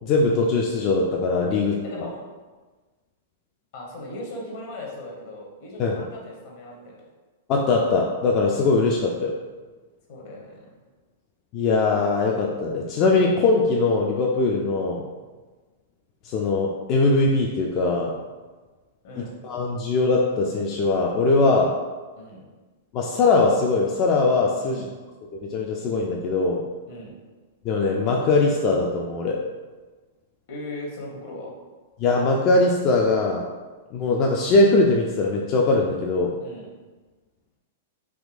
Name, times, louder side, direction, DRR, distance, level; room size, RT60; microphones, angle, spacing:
voice 1, 0.0-1.7 5.8-6.0 7.5-9.3 11.5-15.0 16.2-18.1 19.4-21.7 22.9-24.9 25.3-26.6 27.6-29.4 32.0-33.4 33.9-36.3, left 3 dB, 40° left, -1 dB, 0.3 m, -21 dB
voice 2, 1.5-2.1 3.7-7.0 10.1-10.8 19.0-19.3 22.2-22.4 24.6-24.9 26.9-27.1 30.5-31.5 36.4-36.7, left 1 dB, 60° left, -2 dB, 0.9 m, -38 dB
3.5 x 2.7 x 2.5 m, 1.3 s
hypercardioid pair, 105°, 0 cm